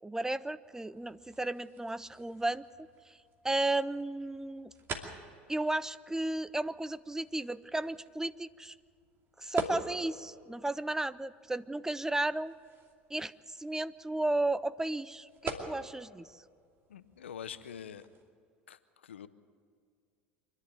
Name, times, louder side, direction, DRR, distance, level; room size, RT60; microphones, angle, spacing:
voice 1, 0.0-2.7 3.1-3.2 3.4-4.7 5.5-8.8 9.4-12.5 13.1-16.4, right 2 dB, 10° right, 16 dB, 0.5 m, -34 dB
sound 1, 0.6-18.3, right 3 dB, 40° right, 2.6 m, -47 dB
voice 2, 16.9-18.0 18.7-19.3, left 8 dB, 80° left, 14 dB, 0.8 m, -45 dB
26.0 x 11.0 x 9.2 m, 2.1 s
hypercardioid pair, 75°, 6 cm